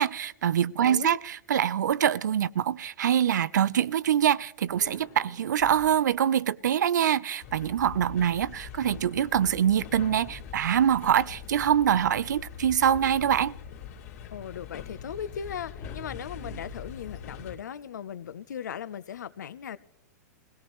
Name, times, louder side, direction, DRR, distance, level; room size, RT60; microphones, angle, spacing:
voice 1, 0.0-13.5, right 9 dB, 85° right, 0.5 m, -24 dB
voice 2, 0.8-1.2 14.3-19.8, left 8 dB, 85° left, 0.8 m, -38 dB
sound 1, 4.7-6.2 9.3-10.9 12.8-14.1 15.8-17.5, left 2 dB, 25° left, 2.0 m, -48 dB
sound 2, 7.4-17.6, left 7 dB, 60° left, 2.6 m, -43 dB
21.5 x 17.5 x 3.1 m
hypercardioid pair, 140°, 9 cm